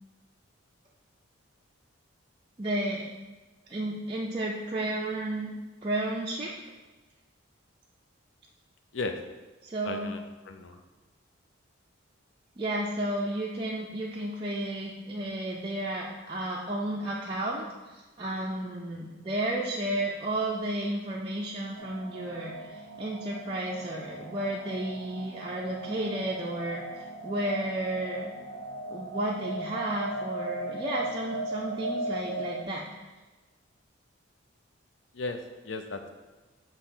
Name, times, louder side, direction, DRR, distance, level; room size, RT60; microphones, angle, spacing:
voice 1, 2.6-3.1 3.7-5.5 5.8-6.5 9.6-10.1 12.6-28.3 28.9-32.9, right 1 dB, 25° right, -4 dB, 0.4 m, -32 dB
voice 2, 9.8-10.8 35.1-35.4 35.6-36.0, left 3 dB, 65° left, 6 dB, 0.6 m, -35 dB
sound 1, 21.8-32.7, right 1 dB, 80° right, 0.6 m, -38 dB
6.5 x 3.0 x 5.6 m, 1.2 s
head